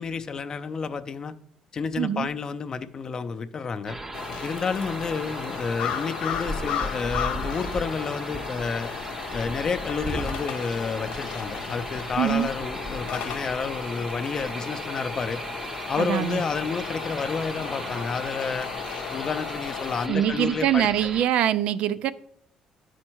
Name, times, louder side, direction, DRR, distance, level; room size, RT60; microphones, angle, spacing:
voice 1, 0.0-1.3 1.7-4.0 4.4-8.9 9.3-15.4 15.9-18.7 19.1-21.1, left 5 dB, 35° left, 0.5 m, -30 dB
voice 2, 2.0-2.3 12.2-12.5 16.0-16.4 20.1-22.1, right 11 dB, 70° right, 0.3 m, -23 dB
sound 1, 3.9-21.3, right 1 dB, 15° right, 0.5 m, -36 dB
sound 2, 4.1-20.1, left 9 dB, 85° left, 0.6 m, -35 dB
sound 3, 4.8-18.1, right 3 dB, 85° right, 1.5 m, -52 dB
9.6 x 4.3 x 4.6 m
cardioid pair, 125°, 2 cm